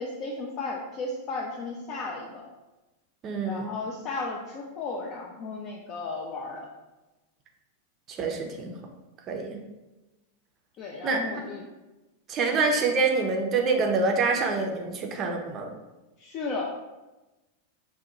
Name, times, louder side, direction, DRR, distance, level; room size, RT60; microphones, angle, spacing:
voice 1, 0.0-2.5 3.5-6.7 10.8-11.7 12.5-12.6 16.2-16.6, left 3 dB, 35° left, -2 dB, 0.4 m, -34 dB
voice 2, 3.2-3.7 8.1-8.7 9.3-9.6 11.0-11.2 12.3-15.7, right 4 dB, 30° right, 2 dB, 0.5 m, -26 dB
2.7 x 2.1 x 3.7 m, 1.1 s
figure-of-eight pair, 90°, 0 cm